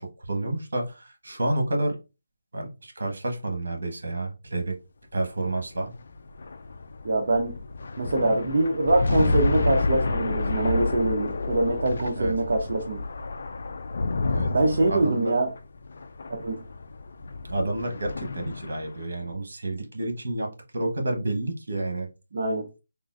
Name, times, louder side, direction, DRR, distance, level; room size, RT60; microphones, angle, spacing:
voice 1, 0.0-2.0 2.5-4.8 5.1-5.9 12.2-12.4 14.3-14.5 14.9-15.3 17.4-22.1, right 2 dB, 80° right, 1.2 m, -29 dB
sound 1, 5.4-19.0, left 3 dB, 60° left, 0.3 m, -29 dB
voice 2, 7.0-7.5 8.0-13.0 14.5-15.5 16.3-16.6 22.3-22.7, right 2 dB, 55° right, 0.6 m, -24 dB
3.7 x 2.4 x 2.4 m
hypercardioid pair, 165°, 0 cm